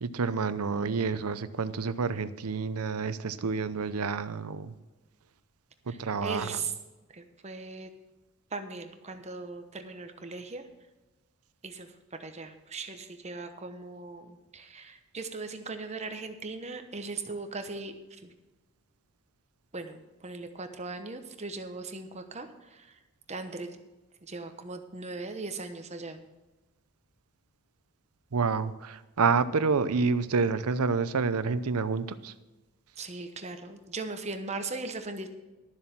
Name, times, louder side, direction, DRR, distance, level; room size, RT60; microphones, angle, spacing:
voice 1, 0.0-4.7 5.9-6.6 28.3-32.3, right 4 dB, 90° right, 13 dB, 0.7 m, -28 dB
voice 2, 5.9-6.7 7.1-7.9 8.5-10.6 11.6-11.9 12.2-18.0 18.2-18.3 19.7-23.0 23.3-23.7 24.2-26.3 33.0-35.3, right 3 dB, 30° right, 7 dB, 1.0 m, -39 dB
12.5 x 7.3 x 6.0 m, 1.1 s
head